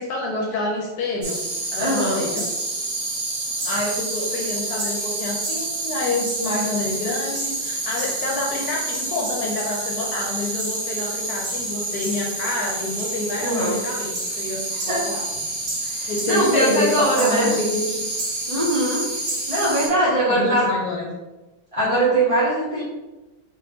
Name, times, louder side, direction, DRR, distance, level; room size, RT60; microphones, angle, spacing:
voice 1, 0.0-1.4 1.7-2.4 3.6-15.2 16.1-18.0 20.3-21.1, left 2 dB, 70° left, -1 dB, 1.1 m, -27 dB
sound 1, 1.2-19.9, right 2 dB, 85° right, 1.6 m, -28 dB
voice 2, 1.8-2.2 13.4-13.8 14.9-15.0 15.9-17.5 18.5-19.1 19.5-20.7 21.7-22.8, right 1 dB, 35° right, -8 dB, 0.5 m, -21 dB
3.8 x 2.9 x 3.4 m, 1.1 s
omnidirectional pair, 1.8 m